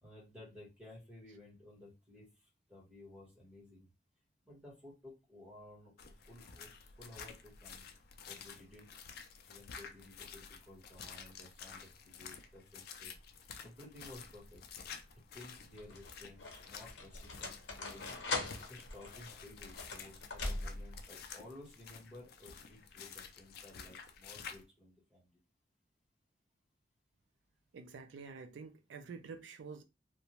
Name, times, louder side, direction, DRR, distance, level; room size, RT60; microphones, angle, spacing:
voice 1, 0.0-3.9 4.4-7.9 8.2-9.0 9.4-13.2 13.6-14.6 15.1-18.2 18.7-25.4, left 1 dB, 5° right, 1.2 m, -55 dB
sound 1, 6.0-24.6, left 6 dB, 55° left, 0.4 m, -51 dB
sound 2, 14.2-14.7 15.5-21.0, left 2 dB, 90° left, 0.8 m, -42 dB
voice 2, 27.7-29.8, right 5 dB, 90° right, 0.4 m, -48 dB
2.5 x 2.1 x 2.9 m
head